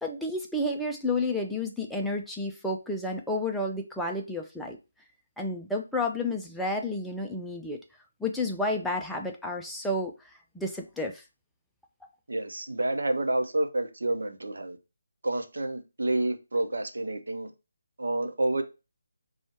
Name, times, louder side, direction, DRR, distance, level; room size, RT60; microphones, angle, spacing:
voice 1, 0.0-4.8 5.4-7.8 8.2-10.1 10.5-11.2, left 2 dB, ahead, 0.5 m, -31 dB
voice 2, 12.3-14.8 15.2-17.5 18.0-18.6, right 2 dB, 65° right, 0.8 m, -29 dB
4.4 x 2.4 x 4.3 m
figure-of-eight pair, 150°, 0 cm